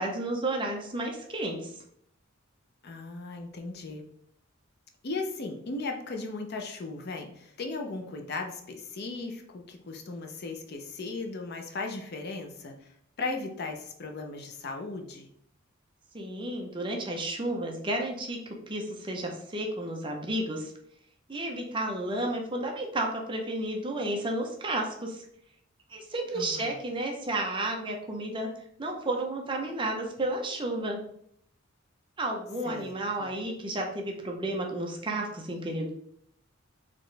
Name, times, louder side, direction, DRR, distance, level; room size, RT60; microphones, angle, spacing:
voice 1, 0.0-1.7 16.1-20.7 21.3-25.2 25.9-28.5 28.8-31.0 32.2-35.9, right 1 dB, 25° right, 1 dB, 0.6 m, -32 dB
voice 2, 2.8-4.0 5.0-15.3 26.3-26.8 32.6-33.3, left 3 dB, 50° left, 3 dB, 0.6 m, -37 dB
4.1 x 3.1 x 3.2 m, 0.68 s
head